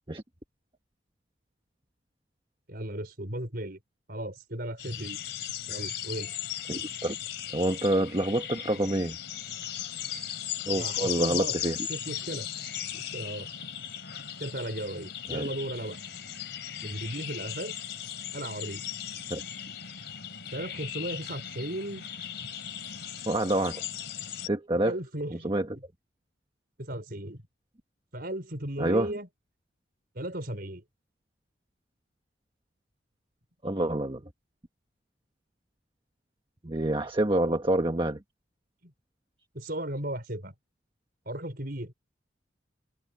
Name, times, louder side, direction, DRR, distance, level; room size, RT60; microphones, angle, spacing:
voice 1, 2.7-3.8 4.1-5.2 5.7-6.3 10.7-11.5 11.9-12.5 12.9-13.5 14.4-16.0 16.8-17.7 18.3-18.8 20.5-22.0 24.7-25.6 26.8-27.4 28.1-29.3 30.2-30.8 38.8-38.9 39.5-40.5 41.3-41.9, right 1 dB, 50° right, 5.4 m, -36 dB
sound 1, 4.8-24.5, left 10 dB, 60° left, 3.8 m, -37 dB
voice 2, 6.7-7.2 7.5-9.2 10.7-11.8 15.3-15.5 19.3-19.4 23.2-23.8 24.4-24.9 25.4-25.7 28.8-29.1 33.6-34.3 36.6-38.2, right 1 dB, 25° right, 1.4 m, -27 dB
open air
head